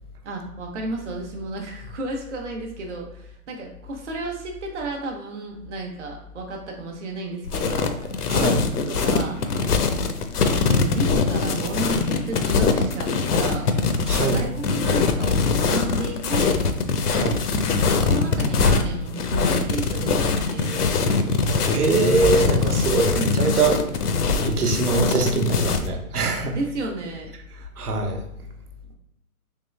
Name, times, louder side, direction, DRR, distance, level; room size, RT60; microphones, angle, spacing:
voice 1, 0.2-8.6 8.9-9.4 10.4-13.7 14.3-16.6 17.9-21.4 23.1-23.6 26.5-27.3, right 2 dB, 50° right, 0 dB, 0.8 m, -32 dB
sound 1, 7.5-25.9, left 4 dB, 80° left, 0.7 m, -22 dB
voice 2, 8.3-8.6 14.1-14.4 17.1-17.4 21.7-23.8 24.4-26.6 27.8-28.2, right 3 dB, 80° right, 2 dB, 1.0 m, -23 dB
3.7 x 3.1 x 3.2 m, 0.81 s
hypercardioid pair, 170°, 45 cm